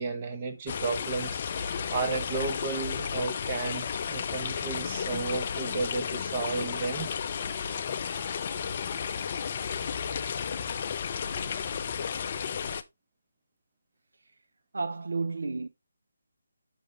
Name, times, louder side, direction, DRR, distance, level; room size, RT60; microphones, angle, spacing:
voice 1, 0.0-7.1, right 4 dB, 30° right, 1.2 m, -33 dB
sound 1, 0.7-12.8, left 7 dB, 40° left, 0.5 m, -33 dB
voice 2, 14.7-15.7, right 3 dB, 75° right, 0.4 m, -31 dB
5.8 x 5.1 x 3.2 m
figure-of-eight pair, 155°, 0 cm